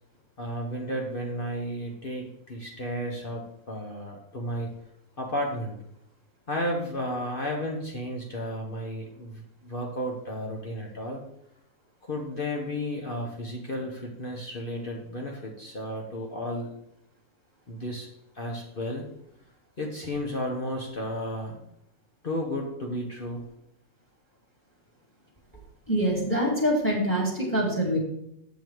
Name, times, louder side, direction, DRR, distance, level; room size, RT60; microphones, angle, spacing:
voice 1, 0.4-4.7 5.2-5.8 6.5-11.2 12.0-16.7 17.7-18.1 18.3-19.0 19.8-21.6 22.2-23.5, equal, 40° left, 0 dB, 1.2 m, -33 dB
voice 2, 25.9-28.0, equal, 10° left, -2 dB, 2.2 m, -25 dB
7.2 x 7.2 x 4.6 m, 0.77 s
omnidirectional pair, 1.5 m